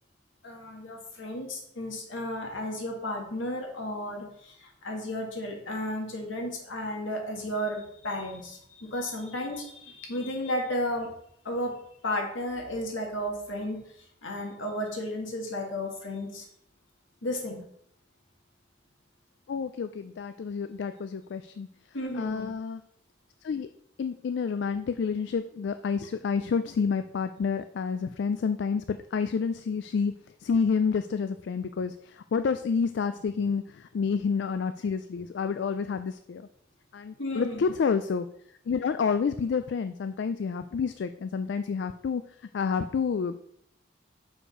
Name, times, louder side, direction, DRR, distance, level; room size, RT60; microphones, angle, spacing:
voice 1, 0.4-11.1 11.5-11.7 12.0-13.8 14.2-16.5 17.2-17.6 21.9-22.5 37.2-37.6, left 1 dB, 80° left, 1 dB, 1.9 m, -33 dB
voice 2, 19.5-21.7 22.1-22.8 23.4-23.7 24.0-30.1 30.4-36.5 36.9-38.3 38.7-42.2 42.5-43.4, left 5 dB, 60° left, 10 dB, 0.3 m, -29 dB
6.5 x 5.1 x 4.9 m, 0.71 s
head